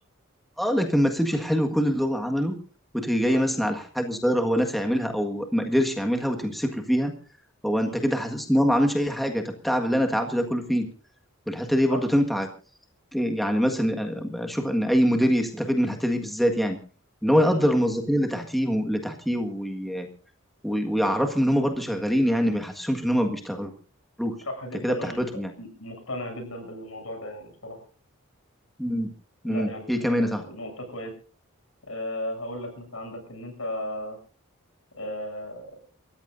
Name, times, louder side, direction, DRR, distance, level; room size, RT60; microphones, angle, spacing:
voice 1, 0.6-2.5 2.9-7.1 7.6-10.9 11.5-12.5 13.1-16.8 17.2-20.1 20.6-23.7 24.2-24.3 24.8-25.5 28.8-29.1 29.4-30.4, equal, ahead, 3 dB, 1.6 m, -24 dB
voice 2, 3.3-3.6 7.8-8.1 11.9-12.0 17.2-17.6 24.4-25.2 25.6-27.8 29.4-31.1 31.9-34.2 35.0-35.8, left 1 dB, 75° left, 4 dB, 7.7 m, -36 dB
29.0 x 14.5 x 2.6 m, 0.37 s
head